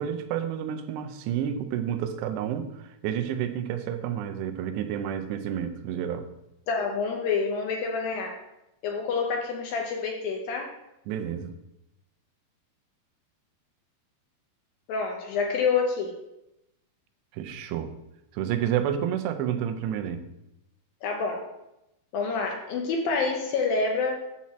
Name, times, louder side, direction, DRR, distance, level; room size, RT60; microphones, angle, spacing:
voice 1, 0.0-6.3 11.1-11.5 17.3-17.9 18.3-20.3, right 9 dB, 85° right, 8 dB, 2.9 m, -30 dB
voice 2, 6.7-8.4 8.8-10.7 14.9-16.1 21.0-21.5 22.1-24.2, left 4 dB, 75° left, 2 dB, 2.3 m, -27 dB
9.8 x 4.2 x 7.3 m, 0.89 s
omnidirectional pair, 4.9 m